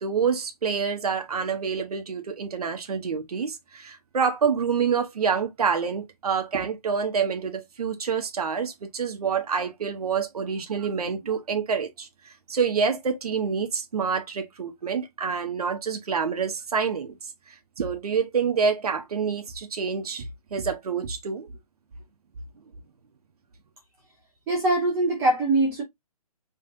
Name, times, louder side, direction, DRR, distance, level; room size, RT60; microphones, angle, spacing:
voice 1, 0.0-20.3 20.5-21.5, right 6 dB, 75° right, 1.1 m, -27 dB
voice 2, 24.5-25.8, right 2 dB, 15° right, 1.5 m, -22 dB
5.1 x 3.3 x 2.6 m
hypercardioid pair, 165°, 19 cm